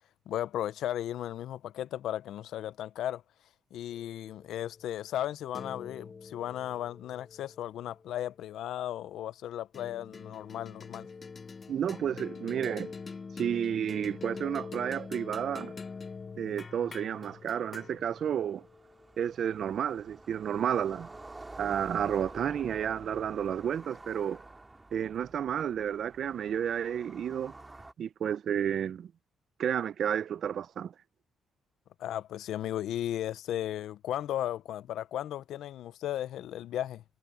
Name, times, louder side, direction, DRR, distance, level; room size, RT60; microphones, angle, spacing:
voice 1, 0.3-3.2 3.7-11.1 32.0-37.0, left 12 dB, 80° left, 0.6 m, -35 dB
sound 1, 3.9-8.6 9.7-20.2, left 4 dB, 35° left, 1.1 m, -45 dB
voice 2, 11.7-12.9 13.4-15.7 16.4-18.6 19.2-21.1 21.6-24.4 24.9-27.5 28.0-29.1 29.6-30.9, right 9 dB, 60° right, 0.5 m, -31 dB
sound 2, 15.4-15.5 15.7-27.9, right 2 dB, 20° right, 2.5 m, -50 dB
cardioid pair, 90°, 0 cm